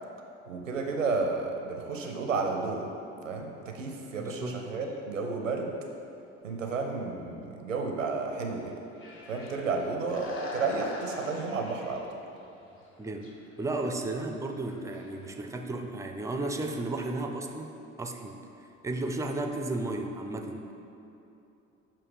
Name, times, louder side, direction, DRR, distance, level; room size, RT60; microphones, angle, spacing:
voice 1, 0.5-2.9 3.2-5.7 6.4-8.7 9.3-12.1, right 4 dB, 90° right, 2 dB, 0.6 m, -32 dB
voice 2, 4.2-4.6 13.0-13.3 13.6-18.4 18.8-20.6, right 2 dB, 10° right, 4 dB, 0.3 m, -34 dB
sound 1, 8.5-9.7 10.0-12.1 12.6-12.8 13.1-13.3 13.6-15.5, left 2 dB, 35° left, 0.9 m, -42 dB
6.9 x 2.8 x 5.1 m, 2.9 s
figure-of-eight pair, 60°, 37 cm